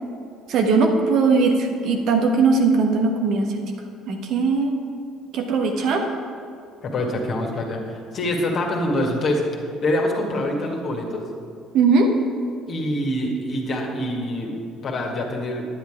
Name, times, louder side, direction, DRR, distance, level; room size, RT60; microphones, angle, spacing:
voice 1, 0.5-3.5 4.1-4.7 5.3-6.0 11.7-12.1, right 4 dB, 55° right, 3 dB, 1.3 m, -19 dB
voice 2, 6.8-9.4 9.8-11.2 12.7-14.6 14.8-15.6, left 1 dB, 40° left, 0 dB, 1.9 m, -25 dB
10.5 x 9.8 x 4.9 m, 2.5 s
figure-of-eight pair, 50°, 0 cm